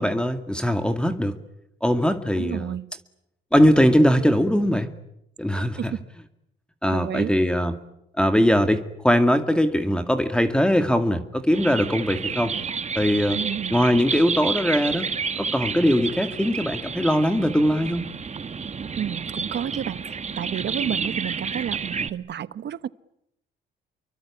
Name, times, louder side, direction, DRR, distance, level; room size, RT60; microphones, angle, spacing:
voice 1, 0.0-1.4 1.8-2.7 3.5-4.9 5.4-5.9 6.8-7.8 8.2-12.5 13.0-13.4 13.7-15.1 15.4-18.0, equal, 5° left, 8 dB, 2.1 m, -21 dB
voice 2, 2.4-2.9 5.6-6.0 6.9-7.3 13.3-13.8 19.0-22.9, right 9 dB, 60° right, 15 dB, 1.2 m, -31 dB
sound 1, 11.5-22.1, right 5 dB, 35° right, 1.4 m, -30 dB
29.5 x 23.5 x 8.5 m, 0.81 s
cardioid pair, 90°, 20 cm